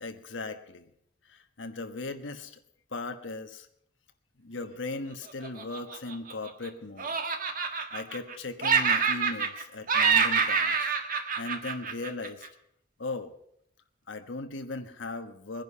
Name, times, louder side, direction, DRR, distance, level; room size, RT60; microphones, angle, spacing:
voice 1, 0.0-0.9 1.3-2.6 2.9-3.7 4.4-7.1 7.9-10.9 11.4-12.5 13.0-13.3 14.1-15.6, left 3 dB, 75° left, 7 dB, 1.3 m, -38 dB
Laughter, 5.4-6.7 7.0-8.3 8.6-9.6 9.9-12.5, right 6 dB, 50° right, 1.5 m, -26 dB
21.0 x 10.5 x 5.7 m, 0.71 s
head